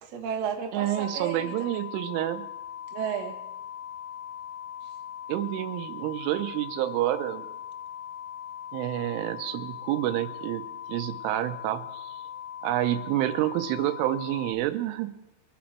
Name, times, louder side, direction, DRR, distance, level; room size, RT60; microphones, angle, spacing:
voice 1, 0.0-1.8 2.9-3.4, right 7 dB, 60° right, 2 dB, 1.8 m, -33 dB
voice 2, 0.7-2.4 5.3-7.5 8.7-12.2 12.6-15.1, right 14 dB, 85° right, 10 dB, 3.3 m, -28 dB
sound 1, 0.8-14.6, left 9 dB, 80° left, 3.5 m, -40 dB
23.5 x 9.5 x 4.5 m, 0.94 s
omnidirectional pair, 5.6 m